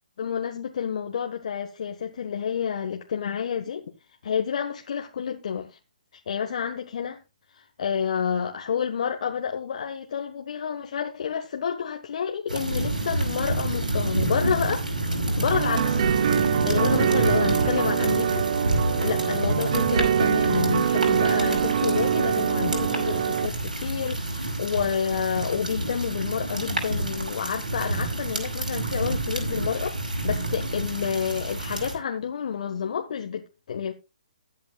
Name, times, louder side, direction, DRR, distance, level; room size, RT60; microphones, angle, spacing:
voice 1, 0.2-3.8 4.2-5.8 6.3-7.2 7.5-14.8 15.4-16.1 16.5-18.5 19.0-33.9, left 7 dB, 55° left, 1.5 m, -29 dB
sound 1, 12.5-31.9, right 2 dB, 85° right, 5.2 m, -28 dB
sound 2, 15.5-23.5, right 8 dB, 50° right, 0.9 m, -24 dB
20.5 x 8.5 x 2.4 m
figure-of-eight pair, 135°, 4 cm